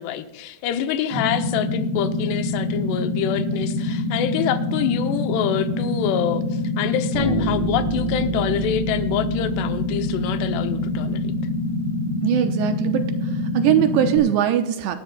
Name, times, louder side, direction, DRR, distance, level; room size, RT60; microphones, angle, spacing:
voice 1, 0.0-11.3, left 10 dB, 80° left, 9 dB, 2.7 m, -26 dB
sound 1, 1.1-14.2, left 2 dB, 5° right, 3.2 m, -25 dB
Bass guitar, 7.1-10.9, right 1 dB, 60° right, 3.6 m, -30 dB
voice 2, 12.2-15.0, right 10 dB, 80° right, 7 dB, 2.8 m, -21 dB
19.5 x 13.0 x 2.2 m, 0.96 s
omnidirectional pair, 5.1 m